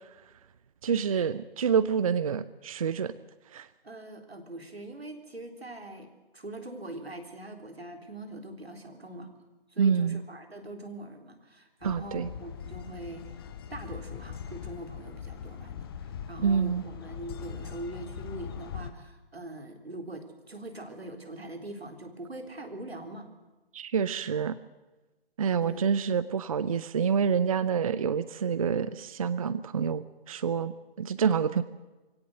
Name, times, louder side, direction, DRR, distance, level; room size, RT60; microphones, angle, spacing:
voice 1, 0.8-3.1 3.5-3.7 9.8-10.2 11.8-12.3 16.4-16.8 23.7-24.6 25.4-31.6, right 6 dB, 35° right, 16 dB, 0.6 m, -27 dB
voice 2, 3.8-9.3 9.7-13.4 13.7-23.3 25.6-25.8, right 1 dB, 85° right, 5 dB, 3.9 m, -42 dB
sound 1, 11.8-18.9, left 8 dB, 25° left, 0.8 m, -41 dB
24.0 x 17.0 x 8.0 m, 1.2 s
figure-of-eight pair, 140°, 30 cm